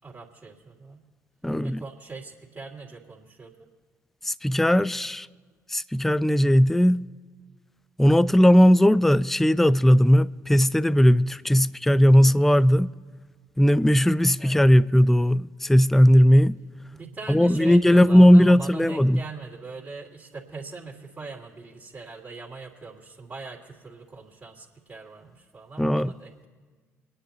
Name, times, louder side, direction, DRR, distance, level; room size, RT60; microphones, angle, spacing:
voice 1, 0.0-1.0 1.6-3.7 11.6-11.7 14.4-14.6 16.9-26.4, right 4 dB, 25° right, 3.1 m, -41 dB
voice 2, 1.4-1.8 4.2-5.3 5.7-7.0 8.0-12.9 13.6-16.6 17.3-19.2 25.8-26.1, equal, 5° left, 0.4 m, -18 dB
29.5 x 10.0 x 2.9 m
figure-of-eight pair, 50°, 8 cm